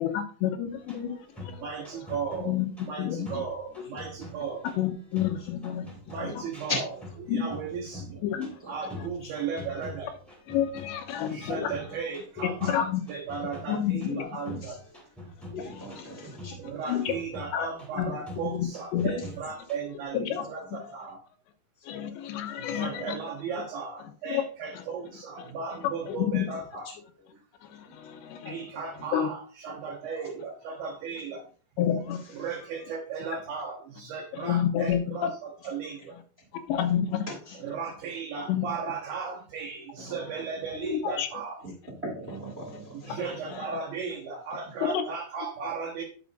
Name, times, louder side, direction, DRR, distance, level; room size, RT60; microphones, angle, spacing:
voice 1, 0.0-1.7 2.4-2.7 3.0-3.4 3.8-3.9 4.6-5.9 6.2-6.4 7.3-7.5 8.2-8.6 10.5-12.0 12.4-13.0 13.7-14.6 15.5-16.2 16.9-17.2 17.5-17.7 17.9-18.2 18.4-19.1 20.1-21.0 21.8-23.2 24.3-24.5 24.7-24.9 25.8-26.5 27.6-28.7 29.1-29.3 31.8-32.2 34.3-35.3 36.7-37.3 38.5-38.7 40.8-41.3 43.1-43.7 44.8-45.0, left 10 dB, 80° left, 7 dB, 2.9 m, -30 dB
sound 1, 0.6-20.0, left 1 dB, ahead, 1.7 m, -46 dB
voice 2, 1.6-2.5 2.9-4.7 6.1-6.8 7.2-8.2 8.7-10.1 11.3-14.8 16.6-21.2 22.6-26.9 28.4-31.4 32.3-36.2 37.6-41.6 42.9-46.0, right 5 dB, 75° right, 0 dB, 2.2 m, -36 dB
voice 3, 8.6-9.3 11.1-11.4 14.6-14.8 15.5-17.0 19.2-19.3 21.8-21.9 26.8-26.9 27.3-27.4 27.8-28.0 28.4-28.5 30.1-30.3 32.2-32.5 36.0-36.1 37.3-37.6 40.0-40.2 41.6-41.7 42.0-43.3, left 2 dB, 40° right, -2 dB, 0.8 m, -40 dB
10.5 x 6.9 x 2.5 m, 0.40 s
omnidirectional pair, 5.3 m